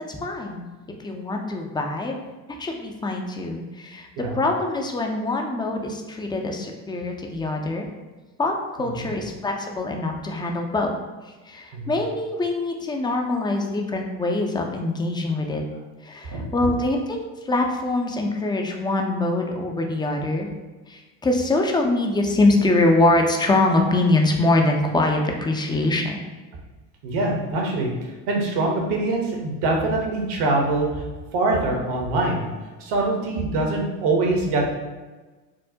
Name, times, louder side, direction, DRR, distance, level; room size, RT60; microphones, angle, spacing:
voice 1, 0.1-0.7 1.0-2.2 2.6-4.1 4.3-7.9 8.4-10.9 11.5-15.6 16.0-17.2 17.4-20.5 20.9-26.2, left 2 dB, 10° left, 2 dB, 0.3 m, -23 dB
voice 2, 27.0-30.9 31.3-32.5 32.8-34.7, right 2 dB, 60° right, 0 dB, 1.0 m, -24 dB
4.5 x 2.0 x 2.7 m, 1.2 s
hypercardioid pair, 70°, 45 cm